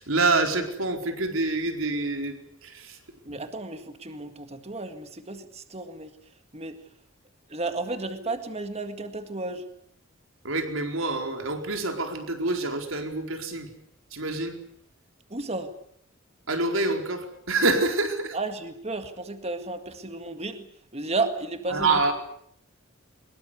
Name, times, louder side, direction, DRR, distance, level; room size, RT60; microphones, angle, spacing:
voice 1, 0.0-2.4 2.6-3.0 3.3-3.4 10.4-13.7 14.1-14.6 16.5-18.4 21.7-22.1, right 3 dB, 70° right, 5 dB, 4.5 m, -26 dB
voice 2, 3.3-6.1 6.5-6.8 7.5-9.6 15.3-15.7 18.3-20.7 20.9-22.1, right 3 dB, 30° right, 8 dB, 1.9 m, -33 dB
23.5 x 22.0 x 8.2 m, 0.67 s
head